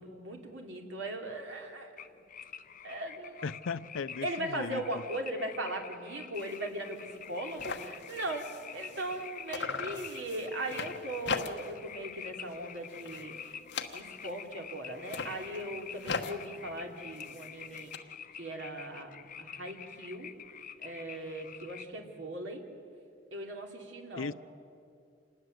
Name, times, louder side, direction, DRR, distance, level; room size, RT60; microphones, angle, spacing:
voice 1, 0.0-1.9 2.8-3.5 4.2-13.5 13.8-18.1 18.4-19.1 19.4-20.3 20.8-22.6 23.3-24.3, right 1 dB, 70° right, 3.0 m, -39 dB
sound 1, 2.0-21.8, left 8 dB, 45° left, 0.9 m, -47 dB
voice 2, 3.4-4.8 24.2-24.3, left 5 dB, 90° left, 0.5 m, -37 dB
sound 2, 6.4-6.6 6.9-7.0 7.2-9.2 9.5-11.9 12.2-12.6 12.9-14.4 14.9-18.0, left 4 dB, 60° left, 1.2 m, -40 dB
27.0 x 20.0 x 7.8 m
head